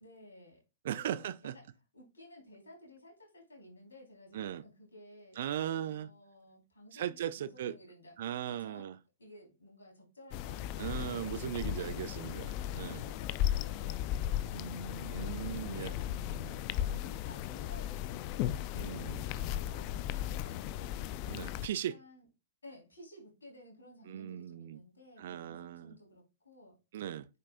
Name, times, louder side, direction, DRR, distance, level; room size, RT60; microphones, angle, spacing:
voice 1, 0.0-1.6 1.9-5.5 5.8-8.9 9.2-12.4 12.8-16.0 16.8-18.6 19.3-21.0 21.6-22.2 22.6-26.8, left 1 dB, 80° left, 4.1 m, -56 dB
voice 2, 0.8-1.5 4.3-4.6 5.4-6.1 6.9-7.7 8.2-8.9 10.8-13.1 15.1-15.9 16.3-16.6 18.7-19.2 21.3-22.0 24.1-24.8 25.2-26.0 26.9-27.3, right 10 dB, 60° right, 0.4 m, -38 dB
sound 1, 10.3-21.7, left 12 dB, 40° left, 0.4 m, -36 dB
Keyboard (musical), 14.5-17.3, right 1 dB, 75° right, 1.0 m, -49 dB
8.3 x 5.4 x 2.5 m
figure-of-eight pair, 110°, 0 cm